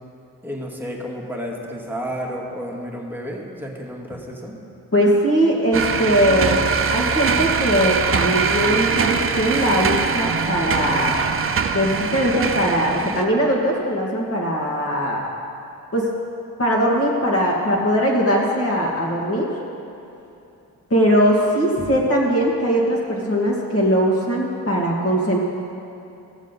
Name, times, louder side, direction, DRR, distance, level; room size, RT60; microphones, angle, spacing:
voice 1, 0.4-4.6, equal, 5° right, -2 dB, 1.9 m, -31 dB
voice 2, 4.9-6.6 6.9-11.2 11.7-15.2 15.9-16.1 16.6-19.5 20.9-25.4, equal, 30° left, -3 dB, 2.0 m, -20 dB
sound 1, 5.7-13.2, right 6 dB, 30° right, 0.6 m, -22 dB
13.5 x 7.3 x 4.1 m, 2.7 s
hypercardioid pair, 40°, 43 cm